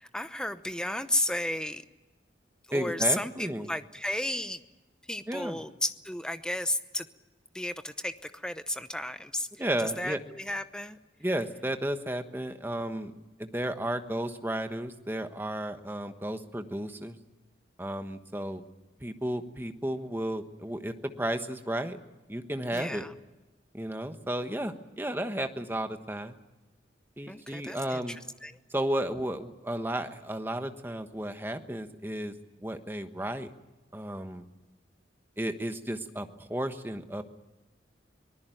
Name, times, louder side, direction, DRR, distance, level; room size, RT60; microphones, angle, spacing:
voice 1, 0.0-1.8 2.7-4.6 5.0-7.1 7.5-9.5 9.8-11.0 22.7-23.1 27.3-28.5, left 1 dB, 5° left, 10 dB, 0.8 m, -33 dB
voice 2, 2.7-3.7 5.3-5.6 9.6-10.2 11.2-13.1 13.4-17.2 17.8-18.6 19.0-22.0 22.3-23.0 23.7-26.3 27.2-28.2 28.7-32.3 32.6-33.5 33.9-34.4 35.4-37.2, right 1 dB, 10° right, 7 dB, 1.2 m, -33 dB
24.5 x 19.5 x 9.2 m, 1.1 s
head